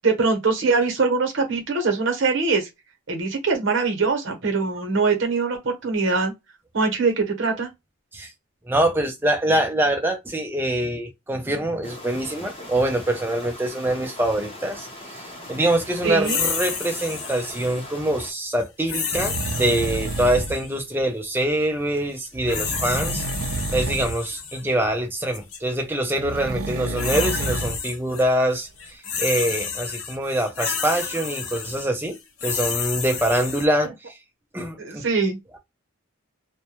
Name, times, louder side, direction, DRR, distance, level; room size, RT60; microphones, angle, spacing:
voice 1, 0.0-2.7 3.1-6.3 6.7-7.7 16.0-16.4 34.8-35.4, right 4 dB, 60° right, 0.8 m, -22 dB
voice 2, 8.7-23.2 23.7-34.2 34.5-35.0, right 1 dB, 10° right, 0.4 m, -24 dB
sound 1, 11.8-18.3, left 1 dB, 25° left, 0.8 m, -40 dB
sound 2, 16.2-17.8 18.9-20.7 22.2-24.6 25.3-25.6 26.6-28.2 28.5-33.7, left 6 dB, 75° left, 0.6 m, -30 dB
sound 3, 19.1-20.6 22.4-24.1 26.1-27.8 28.2-28.3, right 3 dB, 80° right, 0.4 m, -29 dB
2.2 x 2.0 x 2.9 m
head